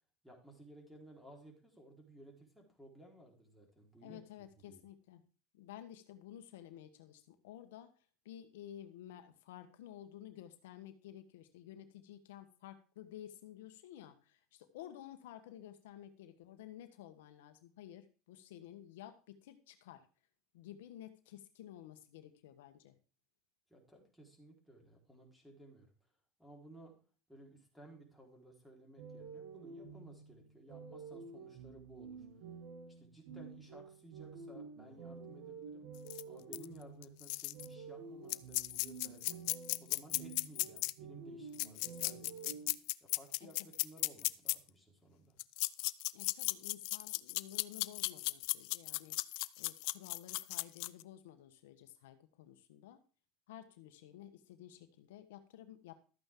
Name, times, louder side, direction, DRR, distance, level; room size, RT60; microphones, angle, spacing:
voice 1, 0.2-4.8 23.7-25.9 26.4-26.9 27.3-32.2 32.9-35.9 36.3-39.4 39.8-42.6 43.0-45.4, right 1 dB, ahead, 1 dB, 4.3 m, -57 dB
voice 2, 4.0-5.2 5.5-20.1 20.5-23.0 43.6-43.7 46.1-49.2 49.6-53.0 53.5-55.9, left 11 dB, 85° left, 9 dB, 1.2 m, -53 dB
sound 1, 29.0-42.7, right 5 dB, 70° right, 2.2 m, -50 dB
sound 2, 36.1-36.2 36.5-36.6 37.0-37.7 38.3-40.9 41.5-44.5 45.4-51.0, left 25 dB, 70° left, 0.4 m, -36 dB
13.0 x 9.0 x 3.8 m, 0.36 s
supercardioid pair, 105°, 0 cm